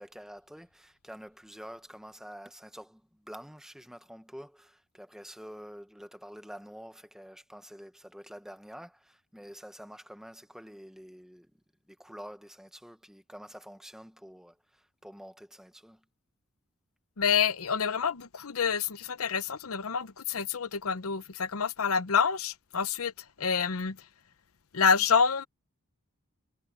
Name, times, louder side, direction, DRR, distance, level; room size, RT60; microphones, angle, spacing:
voice 1, 0.0-11.5 11.9-16.0, equal, ahead, 1.2 m, -48 dB
voice 2, 17.2-23.1 23.4-24.0 24.7-25.5, left 6 dB, 80° left, 0.8 m, -27 dB
head